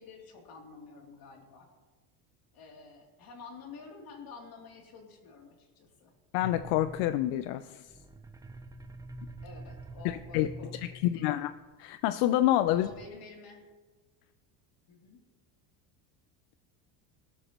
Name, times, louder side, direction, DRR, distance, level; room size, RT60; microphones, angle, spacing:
voice 1, 0.0-1.7 2.5-6.1 9.4-11.4 12.7-13.6 14.9-15.2, left 4 dB, 45° left, 1 dB, 3.0 m, -50 dB
voice 2, 6.3-7.9 10.0-11.5 11.8-12.9, left 13 dB, 80° left, 12 dB, 0.6 m, -28 dB
sound 1, 6.4-11.6 12.6-13.1, right 1 dB, 10° right, 0.5 m, -46 dB
18.5 x 12.0 x 3.0 m, 1.3 s
cardioid pair, 135°, 48 cm